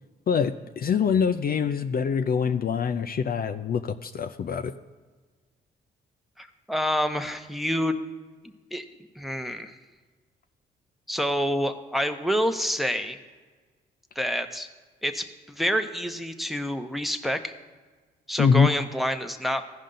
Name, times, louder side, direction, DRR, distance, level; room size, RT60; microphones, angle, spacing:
voice 1, 0.3-4.7 18.4-18.7, left 6 dB, 45° left, 8 dB, 0.5 m, -24 dB
voice 2, 6.4-8.0 8.7-8.8 9.2-9.7 11.1-13.2 14.2-14.7 15.0-17.5 18.3-19.6, equal, ahead, 6 dB, 0.9 m, -27 dB
15.0 x 5.3 x 3.9 m, 1.4 s
supercardioid pair, 55°, 21 cm